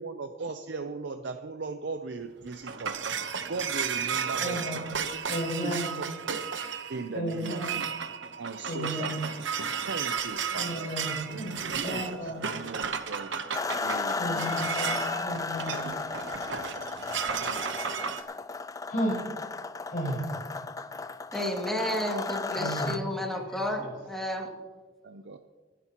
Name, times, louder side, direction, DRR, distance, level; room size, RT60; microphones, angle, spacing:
voice 1, 0.0-4.7 5.6-6.4 6.9-7.9 8.4-9.2 9.8-10.9 11.3-13.4 13.8-14.6 25.0-25.4, right 4 dB, 70° right, 7 dB, 0.6 m, -38 dB
sound 1, 2.2-18.2, right 6 dB, 85° right, 1.0 m, -34 dB
voice 2, 4.4-4.8 5.3-5.9 7.1-7.7 8.6-9.2 10.5-11.5 11.8-12.4 14.1-15.8 18.3-18.6 18.9-19.3 19.9-20.3 22.6-23.0 23.5-23.6, equal, 50° left, -3 dB, 4.8 m, -33 dB
sound 2, 13.5-23.0, left 4 dB, 20° left, 0.3 m, -34 dB
voice 3, 21.3-24.5, left 1 dB, ahead, -1 dB, 2.3 m, -31 dB
26.5 x 10.0 x 3.0 m, 1.4 s
head